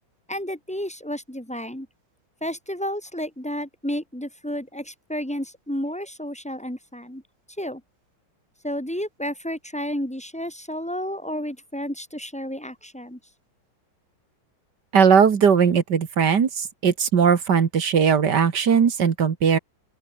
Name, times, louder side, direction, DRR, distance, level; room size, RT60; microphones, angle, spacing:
voice 1, 0.3-1.9 2.4-7.2 7.6-7.8 8.6-13.2, equal, 5° left, 2.8 m, -31 dB
voice 2, 14.9-16.5 16.8-19.6, right 7 dB, 55° right, 2.1 m, -18 dB
open air
omnidirectional pair, 2.3 m